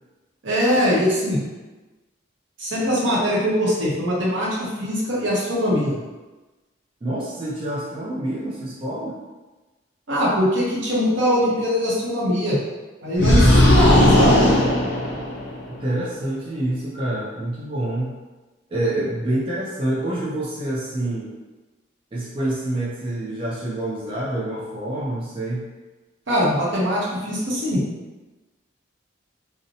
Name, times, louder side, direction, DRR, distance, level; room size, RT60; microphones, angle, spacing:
voice 1, 0.4-1.4 2.6-6.0 10.1-12.6 13.0-14.3 26.3-27.8, equal, 75° right, -6 dB, 0.8 m, -22 dB
voice 2, 7.0-9.2 13.2-14.0 15.7-18.2 18.7-21.3 22.1-25.7, right 1 dB, 25° right, -7 dB, 0.4 m, -27 dB
sound 1, 13.2-15.7, left 1 dB, 65° left, 0.5 m, -16 dB
2.7 x 2.0 x 2.6 m, 1.2 s
head